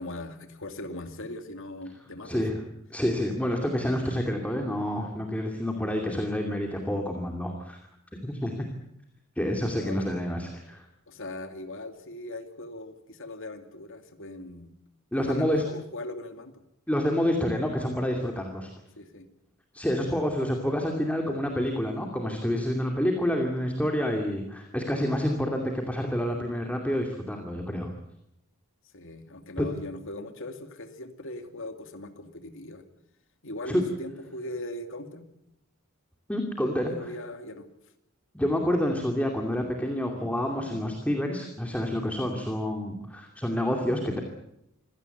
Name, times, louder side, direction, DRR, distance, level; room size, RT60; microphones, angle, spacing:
voice 1, 0.0-2.4 9.8-10.2 11.1-14.7 15.1-16.6 19.0-19.3 28.9-32.8 33.4-35.2 36.8-37.7, left 1 dB, 65° left, 7 dB, 2.6 m, -40 dB
voice 2, 2.9-7.8 8.2-8.5 9.4-10.8 15.1-15.6 16.9-18.7 19.7-27.9 29.6-29.7 33.7-33.8 36.3-37.1 38.3-44.2, equal, 5° left, 2 dB, 2.6 m, -28 dB
26.0 x 17.5 x 8.0 m, 0.81 s
head